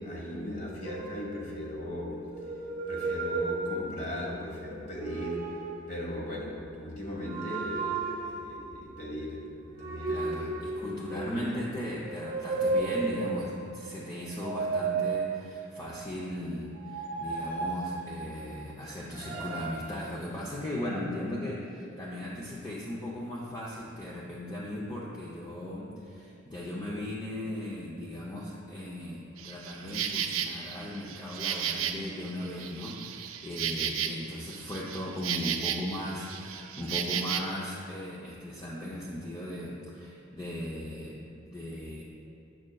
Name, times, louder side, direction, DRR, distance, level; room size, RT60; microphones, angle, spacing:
voice 1, 0.0-2.3 2.9-5.5 5.9-9.5 9.8-10.7 11.1-11.6 17.5-17.6, left 1 dB, 40° left, -3 dB, 1.1 m, -38 dB
sound 1, 0.8-1.8 2.3-4.3 4.9-5.9 7.2-8.6 9.8-11.5 12.0-13.7 14.3-15.9 16.8-18.6 19.1-19.7, right 3 dB, 45° right, 0.7 m, -34 dB
voice 2, 10.1-42.0, left 1 dB, 20° left, -6 dB, 0.5 m, -37 dB
Insect, 29.4-37.4, right 9 dB, 85° right, 0.4 m, -34 dB
7.5 x 6.3 x 2.2 m, 2.8 s
head